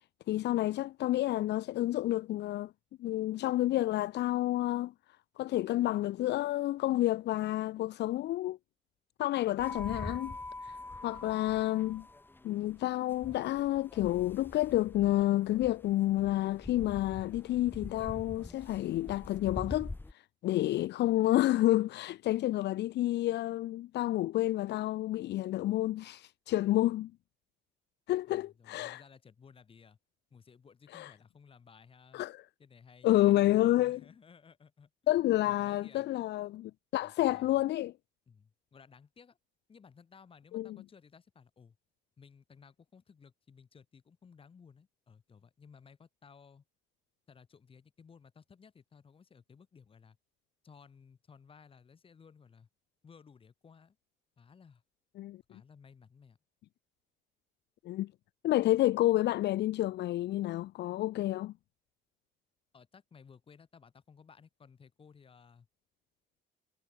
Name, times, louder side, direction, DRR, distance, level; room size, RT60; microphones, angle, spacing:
voice 1, 0.3-2.7 3.0-4.9 5.4-8.6 9.2-10.4 10.6-10.8 11.0-12.0 12.4-27.1 28.1-29.0 30.9-31.1 32.1-32.4 33.0-34.0 35.1-37.9 40.5-40.8 55.2-55.4 57.8-58.1 58.4-61.5, left 15 dB, 60° left, 0.7 m, -29 dB
sound 1, 9.6-20.1, left 2 dB, 10° left, 3.1 m, -45 dB
voice 2, 28.3-30.0 30.3-32.2 32.6-36.1 37.0-37.6 38.3-39.4 39.7-41.8 42.2-46.6 47.3-50.2 50.6-52.7 53.0-54.0 54.4-54.8 55.5-56.4 62.7-65.7, left 6 dB, 25° left, 6.0 m, -58 dB
cardioid pair, 165°, 20 cm